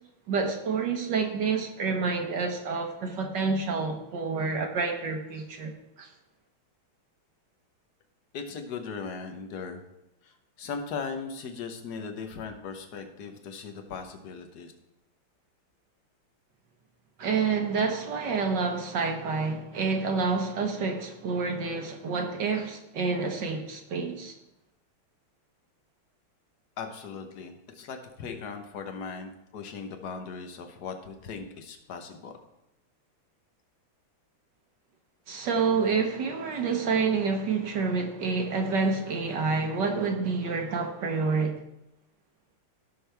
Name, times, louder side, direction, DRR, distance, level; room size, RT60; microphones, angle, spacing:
voice 1, 0.3-5.7 6.0-6.1 17.2-24.3 35.3-41.6, right 4 dB, 60° right, 3 dB, 1.5 m, -28 dB
voice 2, 8.3-9.8 10.2-14.7 26.8-32.3, left 5 dB, 55° left, 5 dB, 1.4 m, -38 dB
16.0 x 6.2 x 3.4 m, 0.88 s
omnidirectional pair, 2.4 m